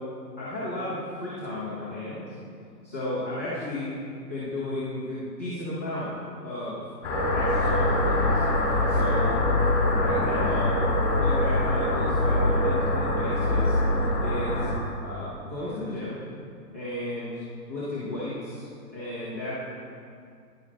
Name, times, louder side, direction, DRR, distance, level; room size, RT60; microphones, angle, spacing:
voice 1, 0.4-2.3 2.8-3.9 4.3-6.1 6.4-6.8 7.3-8.3 8.6-9.4 9.9-10.8 11.1-14.7 15.0-16.2 16.7-18.7 18.9-19.5, left 1 dB, 10° left, -14 dB, 0.5 m, -34 dB
sound 1, 7.0-14.7, left 1 dB, 35° left, 2.4 m, -23 dB
10.5 x 6.5 x 4.0 m, 2.3 s
figure-of-eight pair, 135°, 50 cm